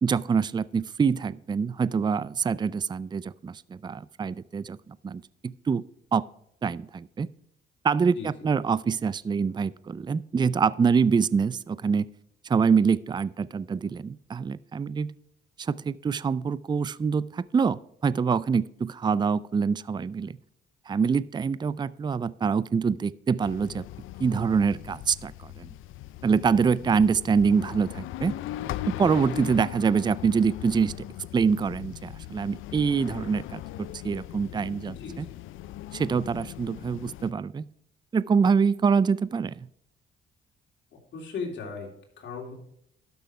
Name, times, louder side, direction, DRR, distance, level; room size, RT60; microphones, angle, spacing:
voice 1, 0.0-4.8 5.0-5.8 6.1-6.3 6.6-7.3 7.8-12.1 12.5-15.1 15.6-20.4 20.9-23.9 24.2-25.7 26.2-28.4 28.9-31.1 31.3-35.3 35.9-37.7 38.1-39.7, right 5 dB, 20° right, 19 dB, 0.4 m, -25 dB
voice 2, 8.1-8.5 34.9-35.2 40.9-41.9 42.2-42.5, left 4 dB, 65° left, 1 dB, 3.3 m, -37 dB
sound 1, 23.4-37.3, left 14 dB, 85° left, 0.5 m, -39 dB
12.5 x 6.2 x 5.0 m, 0.72 s
cardioid pair, 90°, 20 cm